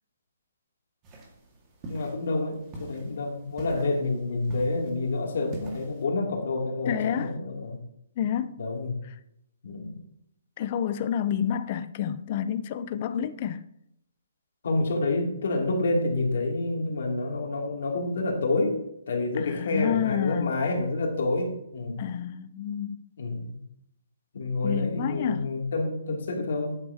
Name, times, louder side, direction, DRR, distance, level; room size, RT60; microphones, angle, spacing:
sound 1, 1.0-6.0, right 1 dB, 20° right, 1.9 m, -44 dB
voice 1, 1.9-7.8 8.6-9.0 9.6-10.0 14.6-18.8 19.1-22.0 23.2-23.6 24.3-26.8, left 2 dB, 60° left, 2.7 m, -28 dB
voice 2, 6.9-7.4 8.2-8.6 9.0-9.1 10.6-13.6 19.4-20.5 22.0-23.0 24.6-25.5, left 9 dB, 30° left, 0.5 m, -29 dB
11.0 x 8.7 x 2.9 m
hypercardioid pair, 165°, 0 cm